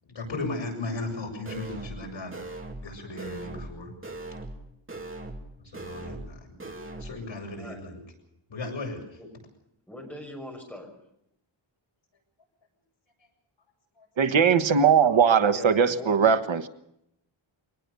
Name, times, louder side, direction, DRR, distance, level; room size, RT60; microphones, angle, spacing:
voice 1, 0.1-2.3 2.8-3.9 5.6-6.6 7.0-8.0 8.5-9.0, left 2 dB, 70° left, 1 dB, 7.4 m, -36 dB
sound 1, 1.5-2.0 2.3-2.9 3.2-3.7 4.0-4.6 4.9-5.5 5.7-6.3 6.6-7.1, right 2 dB, 25° right, 2.9 m, -39 dB
voice 2, 9.9-10.9 15.4-16.4, left 1 dB, 5° left, 1 dB, 6.1 m, -41 dB
voice 3, 14.2-16.7, right 6 dB, 70° right, 11 dB, 1.4 m, -20 dB
24.0 x 19.0 x 6.9 m, 0.79 s
wide cardioid pair, 160°, 47 cm